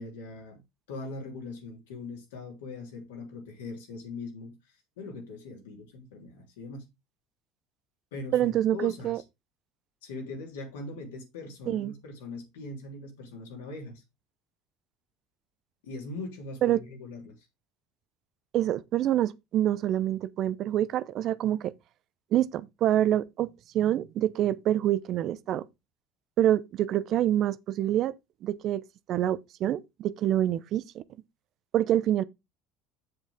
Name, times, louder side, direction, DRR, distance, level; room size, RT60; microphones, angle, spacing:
voice 1, 0.0-4.6 5.0-6.9 8.1-9.2 10.0-14.0 15.8-17.4, left 3 dB, 80° left, 3.3 m, -41 dB
voice 2, 8.3-9.2 11.7-11.9 16.6-16.8 18.5-21.7 22.3-25.6 26.4-28.1 28.4-28.8 29.1-31.0 31.7-32.2, right 12 dB, 55° right, 0.6 m, -26 dB
7.8 x 7.4 x 3.6 m
hypercardioid pair, 75°, 0 cm